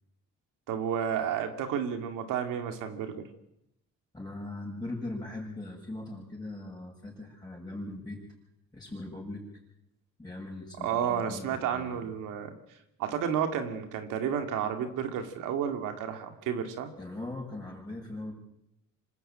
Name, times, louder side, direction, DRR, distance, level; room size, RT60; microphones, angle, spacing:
voice 1, 0.7-3.2 10.8-12.5 13.0-16.9, right 8 dB, 80° right, 5 dB, 2.5 m, -31 dB
voice 2, 4.1-8.2 8.7-9.4 10.2-12.1 17.0-18.3, left 2 dB, 15° left, -2 dB, 7.3 m, -40 dB
26.5 x 13.5 x 9.0 m, 0.81 s
cardioid pair, 110°, 31 cm